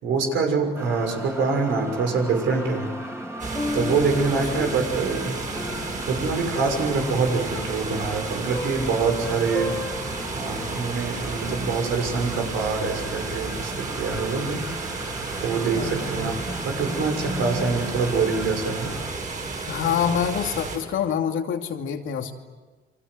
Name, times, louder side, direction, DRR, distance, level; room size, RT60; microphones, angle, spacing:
voice 1, 0.0-2.9 3.7-5.4 5.8-9.8 10.3-14.6 15.4-16.4 16.6-18.9, right 4 dB, 80° right, 3 dB, 6.3 m, -25 dB
sound 1, 0.7-19.1, right 1 dB, 15° right, 3.7 m, -37 dB
Piano, 2.5-10.4, left 3 dB, 15° left, 2.6 m, -34 dB
sound 2, 3.4-20.8, right 3 dB, 40° right, 7.1 m, -32 dB
voice 2, 4.3-4.7 15.5-16.3 19.7-22.3, left 7 dB, 80° left, 4 dB, 2.7 m, -27 dB
29.0 x 24.0 x 8.0 m, 1.3 s
cardioid pair, 90°, 20 cm